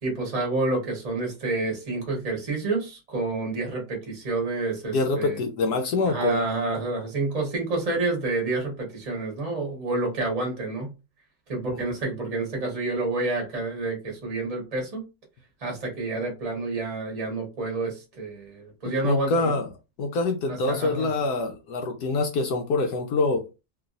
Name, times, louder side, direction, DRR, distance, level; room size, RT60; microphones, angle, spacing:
voice 1, 0.0-5.4 6.1-10.9 11.5-15.0 15.6-19.5 20.5-21.1, right 3 dB, 25° right, 0 dB, 0.9 m, -29 dB
voice 2, 4.9-6.4 11.7-11.8 19.0-19.7 20.0-23.5, left 3 dB, 70° left, 4 dB, 1.0 m, -25 dB
3.0 x 2.6 x 2.5 m, 0.28 s
omnidirectional pair, 1.9 m